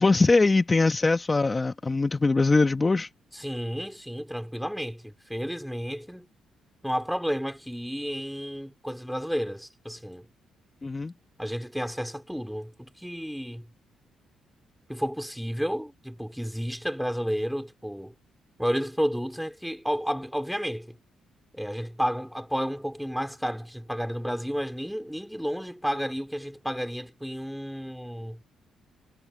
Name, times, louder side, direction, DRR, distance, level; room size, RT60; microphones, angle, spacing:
voice 1, 0.0-3.1 10.8-11.1, left 3 dB, 25° left, 1.3 m, -22 dB
voice 2, 3.3-6.3 6.8-10.3 11.4-13.7 14.9-18.1 18.6-21.0 21.5-28.4, equal, ahead, 3.4 m, -31 dB
cardioid pair, 90°, 0 cm